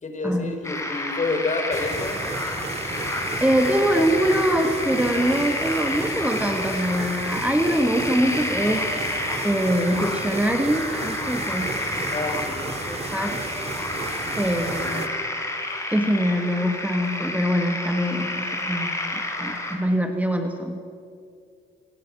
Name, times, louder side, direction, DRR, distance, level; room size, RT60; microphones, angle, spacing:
voice 1, 0.0-2.2 3.7-4.2 12.1-12.7 14.8-15.1, left 3 dB, 35° left, 5 dB, 4.3 m, -29 dB
sound 1, 0.6-19.7, left 1 dB, 15° left, 4.7 m, -30 dB
sound 2, 1.7-15.1, right 3 dB, 30° right, 2.3 m, -34 dB
voice 2, 3.4-8.9 9.4-12.2 12.9-13.4 14.4-15.1 15.9-20.8, equal, 5° right, 4 dB, 1.9 m, -24 dB
28.0 x 19.5 x 6.4 m, 2.4 s
cardioid pair, 90°, 20 cm